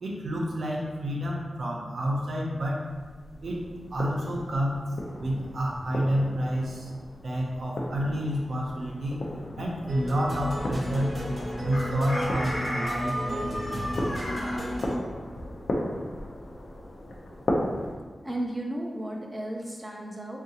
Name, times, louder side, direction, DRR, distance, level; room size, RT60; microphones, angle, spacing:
voice 1, 0.0-2.9 3.4-4.9 5.2-6.9 7.2-9.3 9.6-11.2 11.6-14.0, equal, 75° right, -2 dB, 0.6 m, -29 dB
sound 1, 2.8-18.0, left 1 dB, 75° left, 0.5 m, -36 dB
sound 2, 9.9-15.0, equal, 40° right, 0.9 m, -34 dB
Chicken rooster, 11.7-14.6, equal, 30° left, 0.6 m, -33 dB
voice 2, 18.2-20.4, right 1 dB, 10° right, -1 dB, 0.4 m, -34 dB
3.7 x 2.4 x 2.8 m, 1.5 s
wide cardioid pair, 120°, 0 cm